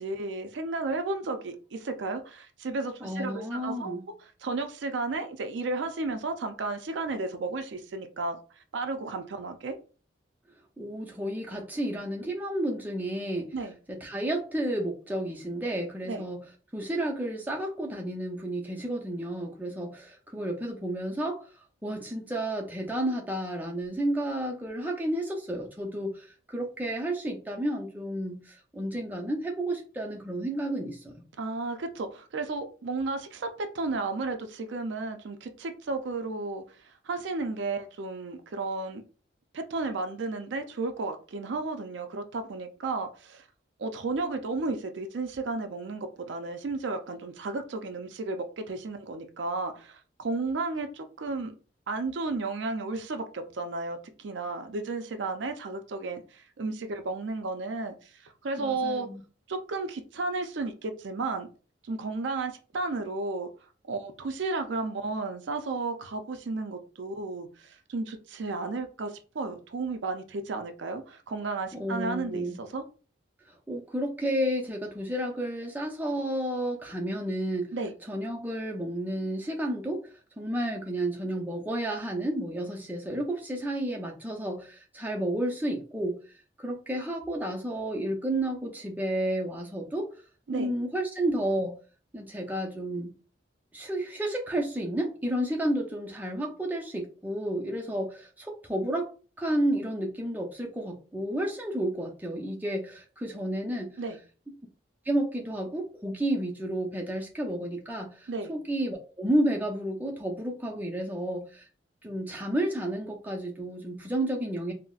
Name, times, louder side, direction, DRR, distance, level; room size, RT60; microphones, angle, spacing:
voice 1, 0.0-4.0 4.4-8.4 8.7-9.8 13.5-13.7 16.1-16.2 31.4-36.6 37.1-39.0 39.5-43.4 43.8-51.5 51.9-57.9 58.2-59.1 59.5-61.5 61.9-63.5 63.9-72.8 77.7-77.9 90.5-90.7 104.0-104.2 108.3-108.5, right 3 dB, 70° right, 7 dB, 0.4 m, -33 dB
voice 2, 3.0-4.1 10.8-13.5 13.9-16.4 16.7-21.5 21.8-31.1 58.6-59.2 71.7-72.6 73.7-77.7 78.1-86.2 86.6-90.1 90.5-91.8 92.1-93.1 93.7-99.1 99.4-103.9 105.1-111.7 112.0-114.7, right 1 dB, 10° right, 0 dB, 0.5 m, -31 dB
3.9 x 2.0 x 2.3 m, 0.37 s
head